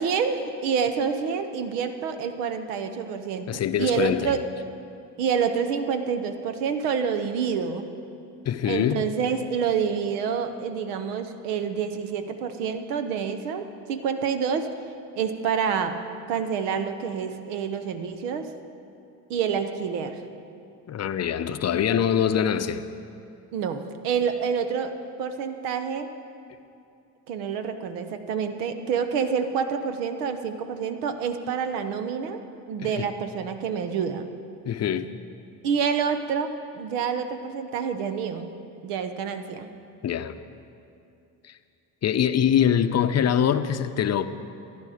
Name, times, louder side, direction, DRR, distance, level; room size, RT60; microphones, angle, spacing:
voice 1, 0.0-4.4 5.2-7.9 8.6-14.7 15.2-16.0 16.3-18.5 19.3-20.2 23.5-26.1 27.3-32.4 32.7-34.3 35.6-38.5 38.8-39.7, right 6 dB, 90° right, 9 dB, 0.9 m, -27 dB
voice 2, 3.5-4.3 8.5-9.1 20.9-22.8 32.8-33.1 34.7-35.1 40.0-40.4 42.0-44.3, left 9 dB, 35° left, 10 dB, 0.6 m, -24 dB
14.5 x 10.5 x 5.0 m, 2.6 s
supercardioid pair, 80°, 45 cm